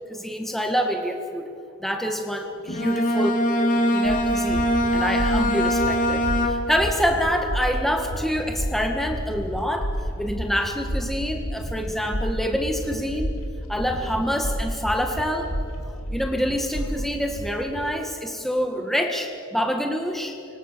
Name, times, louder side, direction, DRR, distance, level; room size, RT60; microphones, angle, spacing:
voice 1, 0.1-1.5 1.8-3.4 3.9-9.9 10.2-13.3 13.7-15.5 16.1-20.4, equal, ahead, 3 dB, 1.7 m, -26 dB
Bowed string instrument, 2.7-6.9, equal, 40° left, 2.2 m, -22 dB
sound 1, 4.0-17.6, equal, 80° left, 3.5 m, -31 dB
27.0 x 25.0 x 6.8 m, 2.6 s
head